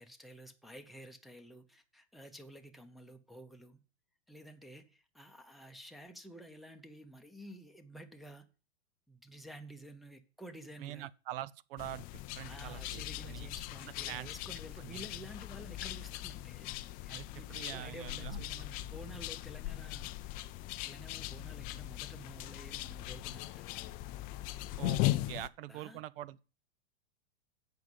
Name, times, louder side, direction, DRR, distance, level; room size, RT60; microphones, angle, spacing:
voice 1, 0.0-3.8 4.3-8.5 9.1-11.1 12.4-16.7 17.0-20.1 20.8-23.7 25.4-26.0, right 1 dB, ahead, 0.9 m, -51 dB
voice 2, 10.8-12.1 12.3-13.5 13.8-14.3 14.8-15.0 17.1-18.4 24.8-25.0 25.3-26.4, right 14 dB, 60° right, 0.6 m, -44 dB
sound 1, 11.8-25.5, left 16 dB, 30° left, 0.4 m, -39 dB
7.7 x 5.3 x 7.5 m
hypercardioid pair, 125°, 33 cm